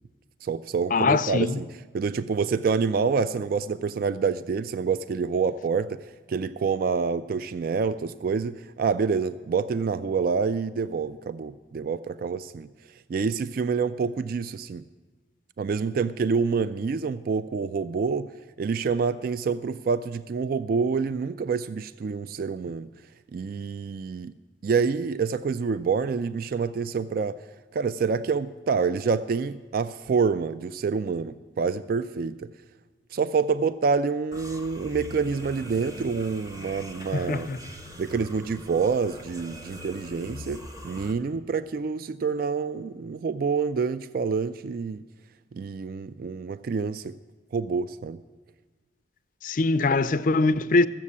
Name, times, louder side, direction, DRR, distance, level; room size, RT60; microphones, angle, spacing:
voice 1, 0.4-1.7 1.9-6.0 6.3-12.7 13.1-14.8 15.6-18.3 18.6-22.9 23.3-24.3 24.6-27.4 27.7-32.5 33.1-37.6 38.0-45.0 45.5-47.1 47.5-48.2, right 5 dB, 50° right, 0.3 m, -27 dB
voice 2, 0.9-1.6 37.1-37.6 49.4-50.9, left 3 dB, 45° left, 0.4 m, -22 dB
sound 1, 34.3-41.1, left 1 dB, 20° right, 0.8 m, -42 dB
14.0 x 7.4 x 8.5 m
head